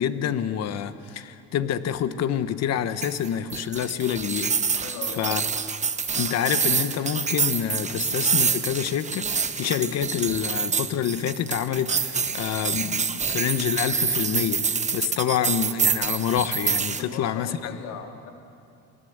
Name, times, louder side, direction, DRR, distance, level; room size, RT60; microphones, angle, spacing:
voice 1, 0.0-4.8 5.2-5.4 6.1-17.7, left 9 dB, 60° left, 12 dB, 1.2 m, -27 dB
sound 1, 3.0-17.0, right 5 dB, 25° right, 1.0 m, -26 dB
voice 2, 4.8-5.3 17.0-18.3, left 6 dB, 75° left, 3 dB, 3.0 m, -38 dB
27.5 x 18.5 x 8.0 m, 2.5 s
cardioid pair, 100°, 30 cm